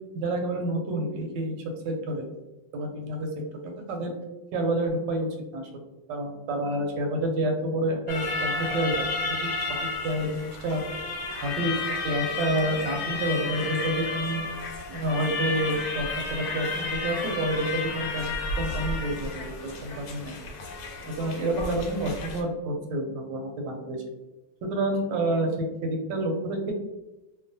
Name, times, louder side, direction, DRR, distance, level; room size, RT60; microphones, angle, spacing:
voice 1, 0.1-1.6 1.8-2.3 2.7-3.3 3.6-4.1 4.5-5.7 6.1-9.0 9.4-10.8 11.4-11.7 12.0-14.4 14.9-16.0 16.3-20.4 21.0-24.0 24.6-25.5 25.8-26.7, right 1 dB, 80° right, 2 dB, 1.2 m, -29 dB
sound 1, 8.1-22.4, left 3 dB, 80° left, 1.2 m, -32 dB
3.0 x 2.2 x 2.5 m, 1.0 s
omnidirectional pair, 1.9 m